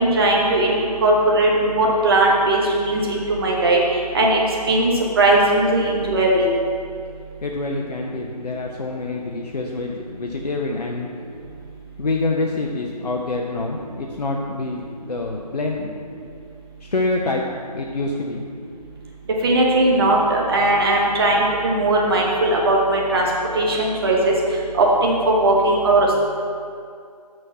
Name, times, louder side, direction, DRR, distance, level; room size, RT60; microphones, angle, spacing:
voice 1, 0.0-3.8 4.1-6.5 19.4-23.3 23.5-24.3 24.7-26.1, right 2 dB, 35° right, -2 dB, 1.0 m, -18 dB
voice 2, 7.4-11.1 12.0-14.8 15.1-15.9 16.8-17.4 17.7-18.4, left 3 dB, 70° left, 0 dB, 0.7 m, -26 dB
6.3 x 6.2 x 5.6 m, 2.3 s
figure-of-eight pair, 150°, 21 cm